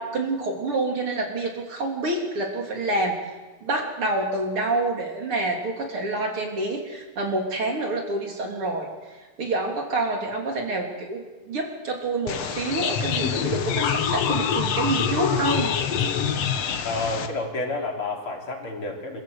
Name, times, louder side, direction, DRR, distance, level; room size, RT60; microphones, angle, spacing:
voice 1, 0.0-3.2 3.6-8.9 9.4-15.7, right 2 dB, 40° right, 1 dB, 3.9 m, -27 dB
sound 1, 12.3-17.3, left 7 dB, 60° left, 2.0 m, -25 dB
voice 2, 16.8-19.2, left 2 dB, 40° left, 0 dB, 4.1 m, -30 dB
27.0 x 15.5 x 8.1 m, 1.2 s
omnidirectional pair, 3.9 m